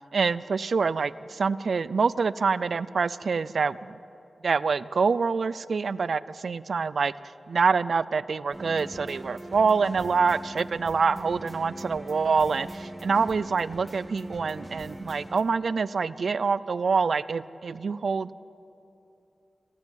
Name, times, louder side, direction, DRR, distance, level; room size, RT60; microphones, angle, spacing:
voice 1, 0.1-4.0 4.4-7.1 7.5-18.4, right 5 dB, 75° right, 18 dB, 0.5 m, -26 dB
sound 1, 8.5-15.4, right 1 dB, 20° right, 2.2 m, -41 dB
26.5 x 15.0 x 9.2 m, 2.9 s
wide cardioid pair, 115°, 0 cm